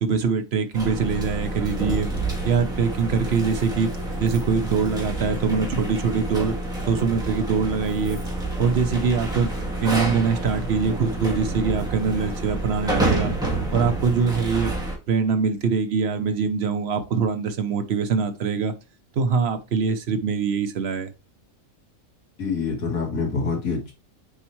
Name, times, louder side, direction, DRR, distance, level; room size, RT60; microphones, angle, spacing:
voice 1, 0.0-2.1 2.4-3.9 4.2-6.6 6.9-8.2 8.6-9.5 9.8-13.3 13.7-14.7 15.1-18.7 19.2-21.1, right 5 dB, 55° right, 0.9 m, -23 dB
sound 1, 0.7-15.0, right 2 dB, 5° right, 1.8 m, -28 dB
voice 2, 22.4-23.9, left 4 dB, 80° left, 2.2 m, -26 dB
6.9 x 4.5 x 3.1 m
omnidirectional pair, 1.4 m